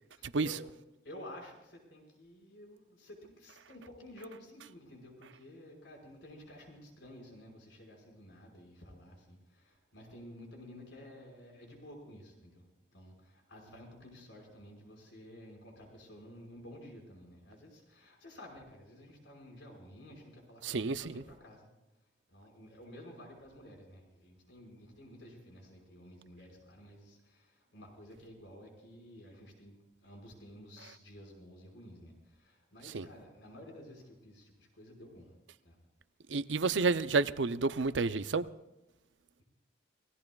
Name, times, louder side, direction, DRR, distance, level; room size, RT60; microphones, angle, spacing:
voice 1, 0.1-0.6 1.0-12.7 12.9-21.7 22.3-35.3 35.6-35.8, left 1 dB, 90° left, 5.5 m, -52 dB
voice 2, 20.6-21.2 32.9-33.1 36.3-38.5, right 4 dB, 90° right, 0.6 m, -30 dB
29.5 x 17.5 x 2.4 m
head